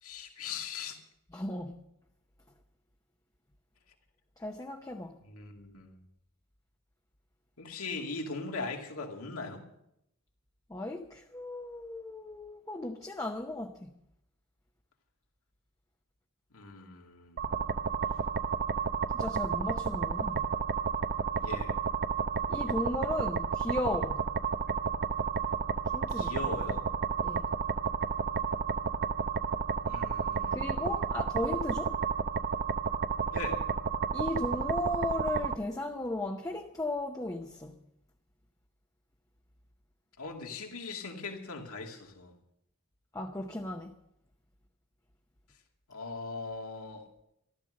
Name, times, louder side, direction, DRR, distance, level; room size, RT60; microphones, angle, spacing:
voice 1, 0.0-1.0 5.2-6.0 7.6-9.7 16.5-17.8 21.4-21.8 26.1-26.8 29.9-31.0 33.3-33.6 40.2-42.3 45.9-47.1, left 3 dB, 80° left, 2.5 m, -40 dB
voice 2, 1.3-1.8 4.4-5.2 10.7-13.9 19.2-20.5 22.5-24.2 25.9-26.3 27.2-27.4 30.5-32.0 34.1-37.7 43.1-44.0, left 1 dB, 15° left, 0.8 m, -35 dB
sound 1, 17.4-35.5, right 6 dB, 45° right, 0.7 m, -31 dB
14.0 x 13.0 x 6.4 m
head